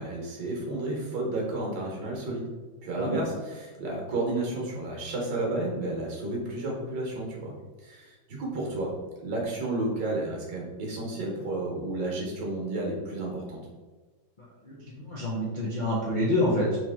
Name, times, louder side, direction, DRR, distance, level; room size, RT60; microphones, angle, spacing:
voice 1, 0.0-2.5 2.8-7.5 7.8-8.9 9.2-13.6, right 2 dB, 70° right, -2 dB, 1.7 m, -32 dB
voice 2, 14.6-16.8, left 1 dB, 60° left, -6 dB, 0.4 m, -27 dB
4.4 x 2.9 x 3.5 m, 1.3 s
omnidirectional pair, 2.1 m